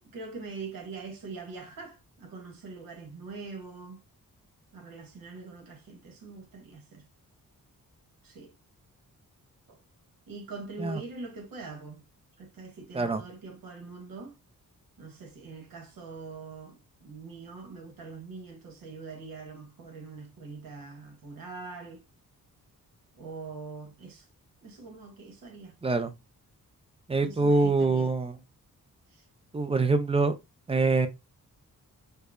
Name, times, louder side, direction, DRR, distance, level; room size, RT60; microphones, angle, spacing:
voice 1, 0.0-4.0 4.7-7.1 8.2-8.5 9.7-9.8 10.3-12.0 12.4-14.4 15.0-22.0 23.1-24.3 24.6-25.8 27.2-28.1 29.1-29.3, right 4 dB, 75° right, 1.1 m, -43 dB
voice 2, 27.1-28.3 29.5-30.3 30.7-31.1, right 3 dB, 20° right, 0.3 m, -24 dB
4.5 x 2.1 x 2.4 m
wide cardioid pair, 115°, 35 cm